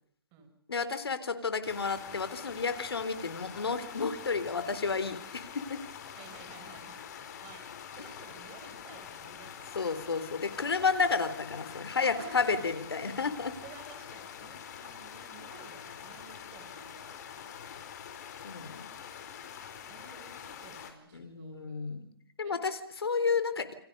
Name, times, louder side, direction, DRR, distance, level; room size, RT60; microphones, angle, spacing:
voice 1, 0.7-5.6 9.7-13.5 18.4-18.9 21.1-22.1 22.4-23.7, left 5 dB, 80° left, 11 dB, 3.9 m, -31 dB
sound 1, 1.6-20.9, left 8 dB, 45° left, 4.6 m, -45 dB
voice 2, 6.2-7.1 7.4-9.9 12.0-12.4 13.6-17.5 19.9-22.0 22.4-22.6, right 5 dB, 25° right, 6 dB, 7.4 m, -53 dB
29.0 x 26.0 x 5.5 m, 0.68 s
hypercardioid pair, 150°, 13 cm